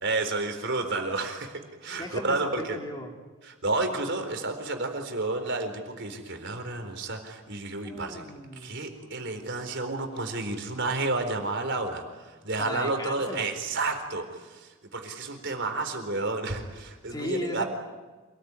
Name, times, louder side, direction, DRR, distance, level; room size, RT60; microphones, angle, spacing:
voice 1, 0.0-2.8 3.4-8.2 8.6-17.6, right 3 dB, 55° right, 6 dB, 4.2 m, -31 dB
voice 2, 2.0-3.1 7.8-8.8 12.6-13.5 17.1-17.6, left 1 dB, 20° left, 1 dB, 3.0 m, -36 dB
27.5 x 20.0 x 9.7 m, 1.3 s
head